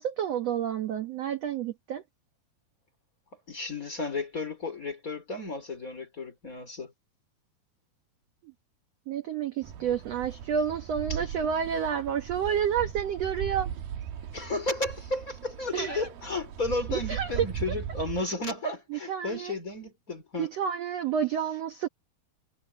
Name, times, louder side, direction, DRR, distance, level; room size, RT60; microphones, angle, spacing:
voice 1, 0.0-2.0 9.1-13.7 15.7-16.0 16.9-17.5 18.9-19.5 20.4-21.9, right 8 dB, 60° right, 1.8 m, -30 dB
voice 2, 3.5-6.9 11.1-11.2 14.3-20.5, left 2 dB, 20° left, 3.8 m, -33 dB
sound 1, 9.6-18.2, right 9 dB, 80° right, 3.4 m, -38 dB
omnidirectional pair, 4.3 m